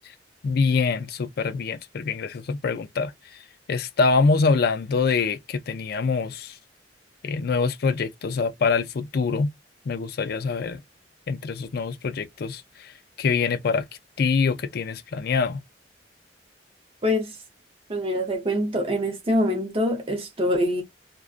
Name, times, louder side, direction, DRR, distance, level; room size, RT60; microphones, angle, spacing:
voice 1, 0.4-3.1 3.7-6.6 7.2-9.5 9.9-10.8 11.3-12.9 13.2-13.9 14.2-15.6, left 4 dB, 55° left, 0.4 m, -24 dB
voice 2, 17.0-17.3 17.9-20.8, left 1 dB, 30° right, 0.7 m, -24 dB
2.5 x 2.2 x 2.4 m
head